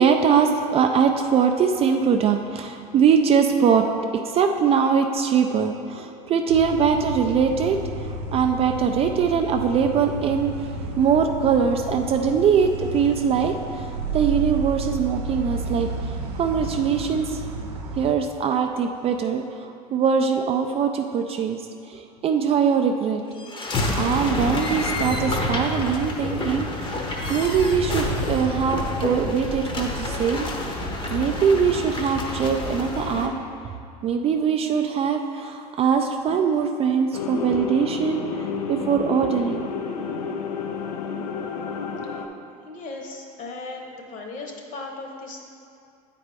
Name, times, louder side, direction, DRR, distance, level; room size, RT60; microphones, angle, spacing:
voice 1, 0.0-3.8 4.1-13.9 14.1-16.1 16.4-17.4 18.0-21.6 21.9-23.4 24.0-26.7 27.3-30.5 31.1-33.3 34.0-38.4 38.7-39.7, right 6 dB, 30° right, 4 dB, 0.4 m, -22 dB
sound 1, 6.5-18.1, right 2 dB, 90° right, 0.7 m, -32 dB
sound 2, 23.3-33.3, left 2 dB, 25° left, 0.8 m, -28 dB
sound 3, 37.1-42.3, left 5 dB, 80° left, 0.6 m, -30 dB
voice 2, 42.6-45.4, left 3 dB, 40° left, 2 dB, 1.1 m, -37 dB
8.5 x 4.1 x 3.4 m, 2.4 s
hypercardioid pair, 95°, 20 cm